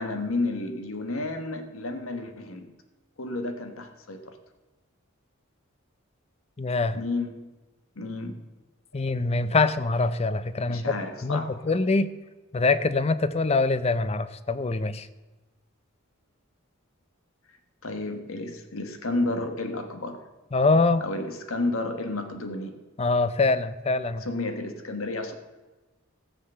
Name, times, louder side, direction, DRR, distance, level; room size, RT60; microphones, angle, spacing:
voice 1, 0.0-2.7 3.2-4.4 6.9-7.5 7.9-8.4 10.7-11.6 17.8-20.2 21.0-22.7 24.2-25.3, left 2 dB, 85° left, 7 dB, 1.4 m, -31 dB
voice 2, 6.6-7.0 8.9-12.1 12.5-15.1 20.5-21.1 23.0-24.3, left 3 dB, 30° left, 14 dB, 0.5 m, -24 dB
14.5 x 6.7 x 6.8 m, 1.2 s
head